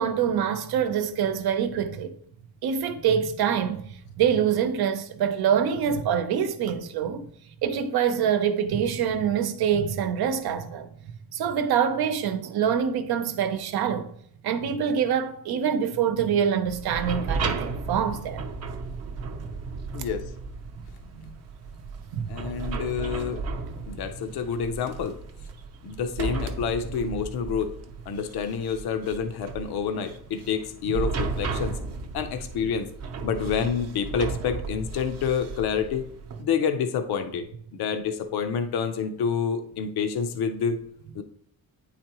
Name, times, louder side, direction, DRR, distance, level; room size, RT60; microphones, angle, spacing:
voice 1, 0.0-2.2 2.6-7.3 7.6-14.1 14.4-18.4 19.4-19.5 21.1-21.3 22.1-22.3 23.7-23.8 30.9-31.0, right 8 dB, 85° right, 0.8 m, -25 dB
sound 1, 16.7-36.4, right 4 dB, 45° right, 0.7 m, -34 dB
voice 2, 19.9-20.2 22.3-23.4 23.9-25.2 25.8-27.7 28.1-31.8 32.1-32.9 33.2-36.1 36.4-37.4 37.7-40.8 41.2-41.3, left 6 dB, 85° left, 0.7 m, -28 dB
9.2 x 4.1 x 3.0 m
cardioid pair, 170°, 37 cm